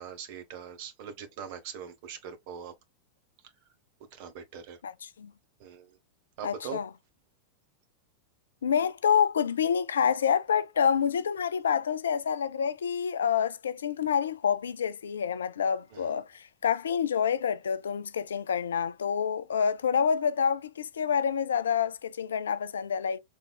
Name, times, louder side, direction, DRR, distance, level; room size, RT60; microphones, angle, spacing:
voice 1, 0.0-2.7 4.1-4.8 5.6-6.0 6.4-6.8 15.9-16.1, right 7 dB, 50° right, 1.1 m, -41 dB
voice 2, 4.8-5.3 6.4-6.9 8.6-23.2, left 7 dB, 65° left, 0.4 m, -27 dB
4.6 x 3.5 x 2.3 m
figure-of-eight pair, 90°, 0 cm